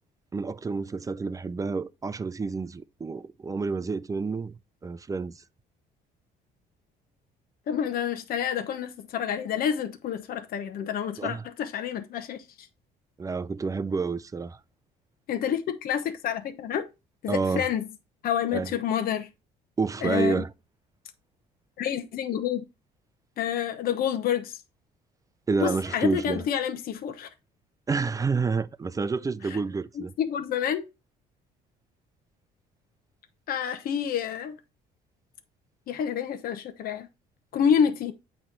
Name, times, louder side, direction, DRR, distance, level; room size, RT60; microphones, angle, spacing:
voice 1, 0.3-4.6 4.8-5.4 11.2-11.4 13.2-14.6 17.3-17.7 18.5-18.7 19.8-20.5 25.5-26.4 27.9-30.1, right 4 dB, 20° right, 0.5 m, -29 dB
voice 2, 7.7-12.7 15.3-16.8 17.2-17.9 18.2-19.3 20.0-20.4 21.8-22.6 23.4-24.6 25.6-27.3 29.4-29.6 29.9-30.9 33.5-34.6 35.9-37.1 37.5-38.1, left 8 dB, 60° left, 1.0 m, -28 dB
8.6 x 3.3 x 5.9 m
cardioid pair, 110°, 17 cm